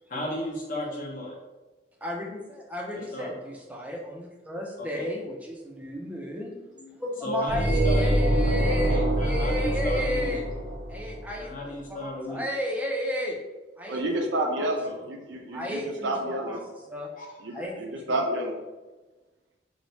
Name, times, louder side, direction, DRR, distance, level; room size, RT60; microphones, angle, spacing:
voice 1, 0.1-1.3 2.9-3.3 4.8-5.0 6.8-6.9 7.2-8.2 8.7-10.4 11.4-12.4 14.8-15.1 15.5-15.6 17.2-17.7, left 1 dB, 50° left, -2 dB, 0.7 m, -35 dB
voice 2, 2.0-6.5 6.9-10.4 10.9-11.5 11.9-13.4 13.8-14.0 14.6-14.7 15.5-16.6 16.9-17.1 17.5-18.2, equal, 10° right, -1 dB, 0.3 m, -33 dB
sound 1, 7.5-11.3, equal, 45° right, 0.6 m, -25 dB
voice 3, 13.9-16.6 17.4-18.6, right 1 dB, 90° right, 2 dB, 0.5 m, -30 dB
3.1 x 2.0 x 2.6 m, 1.2 s
head